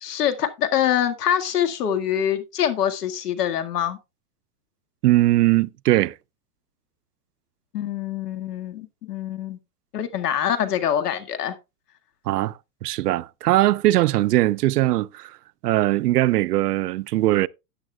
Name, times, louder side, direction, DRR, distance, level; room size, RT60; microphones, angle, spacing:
voice 1, 0.0-4.0 7.7-9.6 9.9-11.6, left 10 dB, 85° left, 1.9 m, -24 dB
voice 2, 5.0-6.2 12.3-15.4 15.6-17.5, right 16 dB, 90° right, 0.6 m, -20 dB
12.5 x 9.6 x 2.3 m
supercardioid pair, 155°, 45 cm